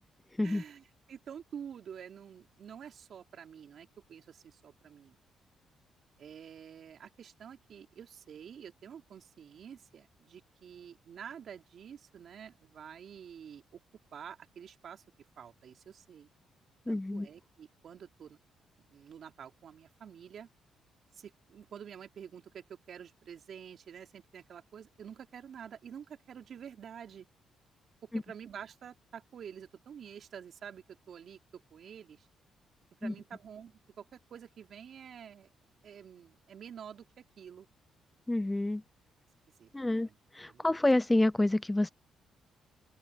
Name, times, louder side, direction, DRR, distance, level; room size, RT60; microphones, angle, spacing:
voice 1, 0.4-5.2 6.2-13.8 14.1-15.0 15.4-16.3 16.9-18.4 18.9-20.5 21.1-27.3 28.0-32.3 33.0-35.5 35.8-37.7 39.6-40.2 40.5-40.7, right 8 dB, 60° right, 3.3 m, -49 dB
voice 2, 16.9-17.3 28.1-28.2 33.0-33.1 38.3-38.8 39.7-40.1 40.3-41.9, left 2 dB, 10° left, 0.4 m, -28 dB
cardioid pair, 90°, 0 cm